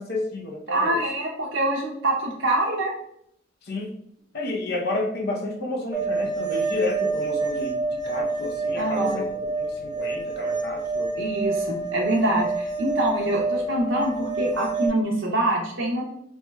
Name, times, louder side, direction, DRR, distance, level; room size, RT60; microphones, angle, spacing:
voice 1, 0.0-1.0 3.6-3.9 4.3-7.8 8.0-11.1, left 2 dB, 55° left, 0 dB, 0.7 m, -31 dB
voice 2, 0.7-2.9 8.7-9.2 11.2-16.0, right 1 dB, 65° right, -1 dB, 0.6 m, -25 dB
sound 1, 5.9-14.9, right 3 dB, 20° right, 0.6 m, -28 dB
4.3 x 2.9 x 2.2 m, 0.73 s
head